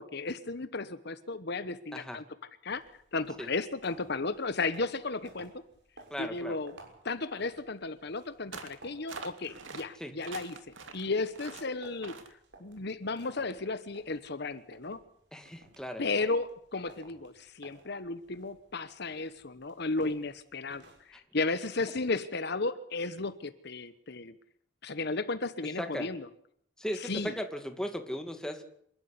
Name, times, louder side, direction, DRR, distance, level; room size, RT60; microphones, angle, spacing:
voice 1, 0.0-2.2 2.6-5.5 6.2-6.7 7.0-12.2 12.6-15.0 16.0-24.3 24.8-26.3 27.0-27.3, left 3 dB, 60° left, 12 dB, 1.1 m, -34 dB
sound 1, 2.7-21.2, right 2 dB, 65° right, 6.4 m, -57 dB
voice 2, 6.1-6.5 10.0-10.1 15.3-16.0 25.8-26.1 26.8-28.6, equal, 5° left, 6 dB, 2.3 m, -37 dB
sound 2, 8.5-8.8 9.1-9.8 10.2-11.0 11.3-11.7 12.0-12.3, right 4 dB, 85° right, 2.6 m, -44 dB
27.0 x 12.0 x 9.8 m, 0.67 s
head